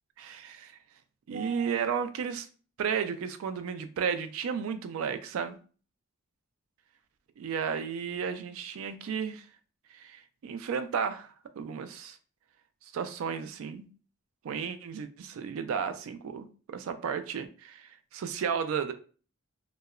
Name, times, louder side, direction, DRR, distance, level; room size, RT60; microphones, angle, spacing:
voice 1, 0.2-0.7 1.3-2.5 2.8-5.6 7.4-9.5 9.9-11.3 11.6-12.2 12.9-13.9 14.4-18.9, right 7 dB, 75° right, 0.3 m, -33 dB
2.8 x 2.0 x 2.3 m
head